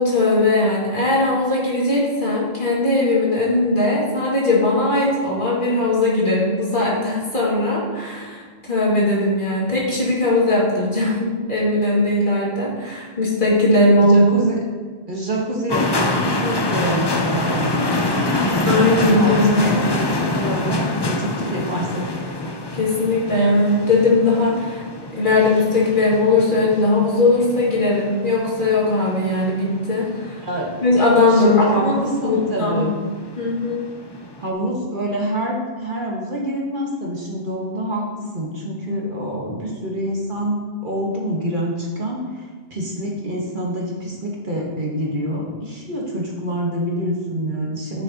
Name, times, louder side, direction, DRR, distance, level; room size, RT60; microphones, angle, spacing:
voice 1, 0.0-14.2 18.7-19.4 22.7-24.8 25.2-30.4 30.8-31.9 32.2-32.9 33.4-33.9 38.9-39.0, left 2 dB, 50° left, -6 dB, 2.3 m, -19 dB
voice 2, 14.0-14.6 15.1-18.1 19.2-22.2 30.4-30.7 31.3-32.9 34.4-48.0, equal, 50° right, -2 dB, 1.5 m, -26 dB
sound 1, 15.7-34.5, left 2 dB, 30° left, 0.6 m, -26 dB
9.9 x 7.4 x 2.9 m, 1.5 s
omnidirectional pair, 1.1 m